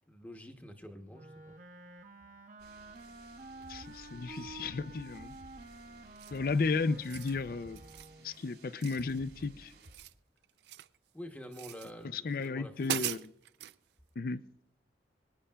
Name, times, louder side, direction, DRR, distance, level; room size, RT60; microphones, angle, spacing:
voice 1, 0.1-1.6 11.1-13.2, equal, 10° left, 0.9 m, -48 dB
Wind instrument woodwind instrument, 1.1-8.4, right 2 dB, 45° right, 0.7 m, -51 dB
sound 1, 2.6-10.0, right 1 dB, 90° right, 3.4 m, -56 dB
voice 2, 3.7-5.3 6.3-7.8 8.2-9.7 12.1-13.3 14.2-14.4, left 4 dB, 55° left, 0.4 m, -34 dB
sound 2, 6.2-6.5 6.9-7.4 7.8-8.1 8.8-9.5 9.7-11.0 11.5-11.9 12.4-12.5 12.8-13.8, right 12 dB, 70° right, 0.4 m, -40 dB
23.0 x 9.8 x 2.3 m
head